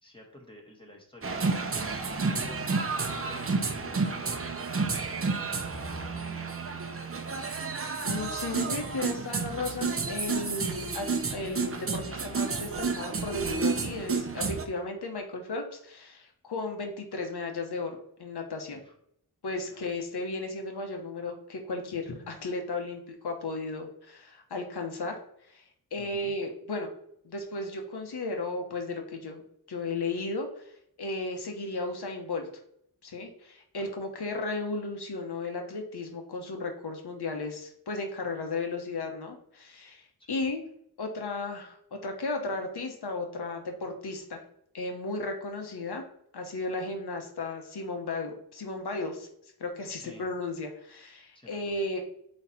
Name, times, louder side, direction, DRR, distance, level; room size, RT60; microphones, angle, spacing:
voice 1, 0.0-1.8 2.2-2.6 2.9-5.4 5.6-7.1 18.7-18.9 19.7-19.8 26.0-26.3 33.8-33.9 40.2-40.5 49.9-50.3 51.3-51.8, left 1 dB, 15° left, 0 dB, 1.8 m, -51 dB
sound 1, 1.2-14.7, right 4 dB, 35° right, 0.7 m, -31 dB
voice 2, 8.0-18.8 19.4-25.2 25.5-25.6 25.9-26.9 27.2-29.4 29.7-32.5 33.0-40.6 41.0-44.4 44.7-46.0 46.3-49.3 49.6-52.0, left 3 dB, 75° left, 3 dB, 1.3 m, -35 dB
8.0 x 3.3 x 4.3 m, 0.72 s
wide cardioid pair, 95°, 40 cm